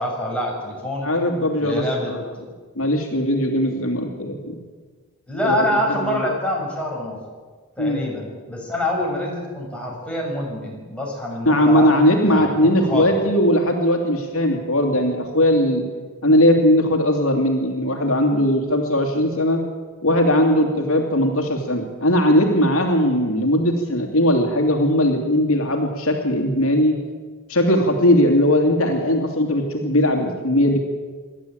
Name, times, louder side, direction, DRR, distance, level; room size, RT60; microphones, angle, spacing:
voice 1, 0.0-1.1 1.6-2.5 5.3-7.2 7.8-13.2, left 1 dB, 5° left, -3 dB, 6.1 m, -26 dB
voice 2, 1.0-1.8 2.8-4.6 5.4-5.8 6.1-6.2 7.8-8.0 11.5-15.9 16.2-19.6 20.0-27.0 27.5-30.8, left 1 dB, 70° left, 3 dB, 2.7 m, -19 dB
26.5 x 12.0 x 8.8 m, 1.5 s
head